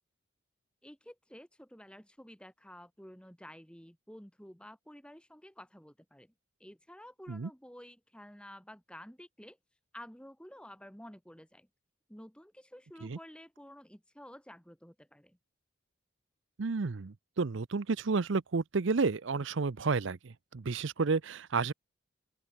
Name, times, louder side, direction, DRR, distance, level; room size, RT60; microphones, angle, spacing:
voice 1, 0.8-6.3 6.6-9.6 9.9-11.7 12.1-15.4, equal, 5° left, 3.1 m, -51 dB
voice 2, 16.6-21.7, right 4 dB, 65° right, 0.6 m, -31 dB
open air
head